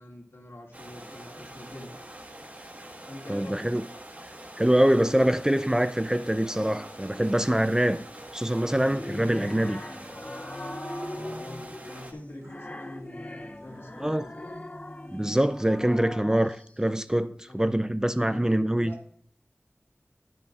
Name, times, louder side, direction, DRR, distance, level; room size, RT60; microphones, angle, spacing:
voice 1, 0.0-1.9 3.1-3.7 11.3-14.6 17.5-17.7 18.2-19.0, left 1 dB, 65° left, 2.1 m, -44 dB
sound 1, 0.7-12.1, right 1 dB, 35° right, 1.4 m, -45 dB
voice 2, 3.3-3.9 4.2-8.0 8.3-9.8 14.0-14.2 15.1-18.9, right 1 dB, 15° right, 0.4 m, -24 dB
sound 2, 6.1-7.1 8.6-16.7, left 1 dB, 30° left, 0.6 m, -41 dB
sound 3, 10.0-16.0, right 2 dB, 85° right, 1.0 m, -50 dB
10.5 x 10.0 x 2.4 m
wide cardioid pair, 60°, 4 cm